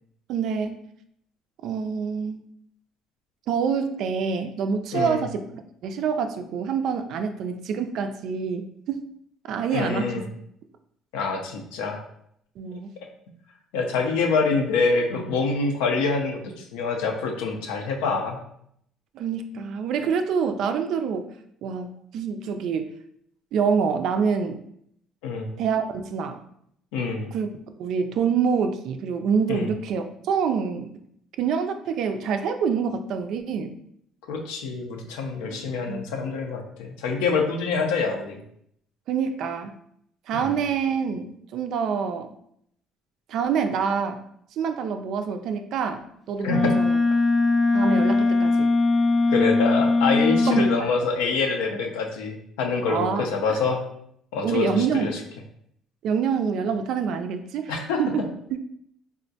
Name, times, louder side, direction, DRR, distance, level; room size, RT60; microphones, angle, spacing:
voice 1, 0.3-0.8 1.6-2.4 3.5-5.4 5.8-9.1 9.4-10.2 12.6-12.9 19.1-21.3 21.6-22.9 23.5-24.6 25.6-26.4 27.3-27.5 27.8-30.9 31.4-33.7 35.9-36.0 39.1-39.7 40.3-42.3 43.3-44.2 44.6-47.0 47.7-48.7 50.5-50.7 52.9-53.3 54.4-55.1 56.0-58.2 58.5-58.6, right 6 dB, 70° right, 7 dB, 0.3 m, -26 dB
voice 2, 4.9-5.2 9.7-10.2 11.1-12.0 13.7-18.4 25.2-25.5 26.9-27.3 29.5-29.7 34.3-38.4 40.3-40.5 46.4-46.7 48.4-48.5 49.3-53.8 54.3-55.2 57.7-58.0, left 4 dB, 85° left, 3 dB, 0.5 m, -26 dB
Wind instrument woodwind instrument, 46.5-50.8, left 3 dB, 35° left, 0.4 m, -20 dB
3.6 x 2.1 x 2.7 m, 0.71 s
supercardioid pair, 80°, 0 cm